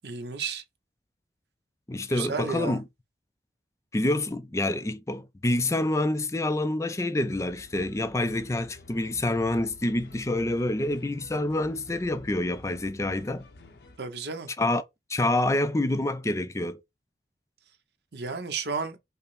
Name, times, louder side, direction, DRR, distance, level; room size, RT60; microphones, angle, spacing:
voice 1, 0.0-0.6 2.1-2.8 14.0-14.5 18.1-19.0, right 5 dB, 75° right, 0.9 m, -32 dB
voice 2, 1.9-2.8 3.9-13.5 14.6-14.8 15.1-16.8, left 1 dB, 15° left, 0.4 m, -27 dB
sound 1, 7.3-14.0, left 2 dB, 70° left, 0.8 m, -50 dB
5.3 x 2.1 x 4.2 m
head